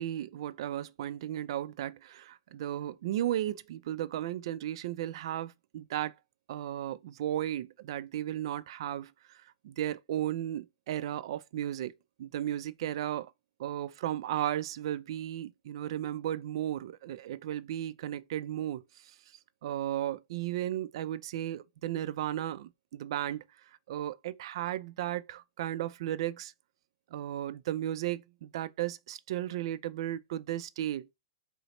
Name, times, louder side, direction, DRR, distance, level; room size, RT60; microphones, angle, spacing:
voice 1, 0.0-6.1 6.5-11.9 12.2-13.3 13.6-19.2 19.6-23.4 23.9-26.5 27.1-31.1, right 12 dB, 60° right, 0.4 m, -35 dB
4.8 x 2.0 x 3.1 m
hypercardioid pair, 135°, 3 cm